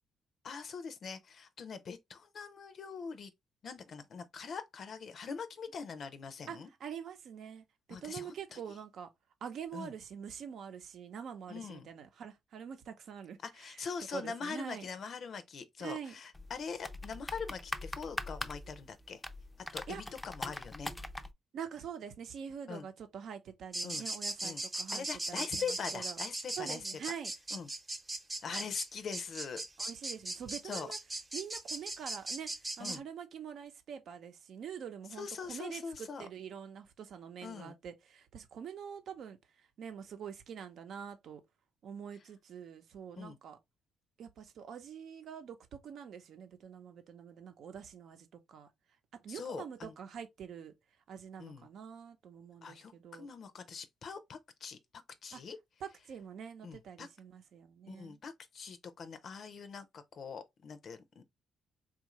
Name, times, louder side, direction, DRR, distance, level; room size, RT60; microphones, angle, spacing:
voice 1, 0.4-3.3 3.6-6.7 7.9-8.6 9.7-9.9 11.5-11.9 13.4-19.2 19.7-20.9 22.7-22.8 23.8-24.1 24.4-24.6 24.9-26.8 27.5-27.7 28.4-29.6 30.6-30.9 32.8-33.0 35.2-36.3 37.4-37.8 43.2-43.4 49.3-50.0 51.4-51.7 52.6-54.8 55.2-55.6 56.6-57.1 57.9-61.2, left 6 dB, 55° left, 0.5 m, -43 dB
voice 2, 6.5-9.1 9.4-13.4 13.7-14.8 15.8-16.1 19.9-20.0 21.5-26.2 26.6-27.3 29.8-31.0 31.3-32.5 32.8-41.4 41.8-43.6 44.2-48.7 49.1-50.7 51.1-53.3 55.3-55.4 55.8-58.2, right 7 dB, 70° right, 0.7 m, -45 dB
sound 1, 16.3-21.3, left 1 dB, 10° left, 0.4 m, -42 dB
sound 2, 23.7-33.0, right 2 dB, 20° right, 0.8 m, -38 dB
3.6 x 2.5 x 3.0 m
cardioid pair, 90°, 0 cm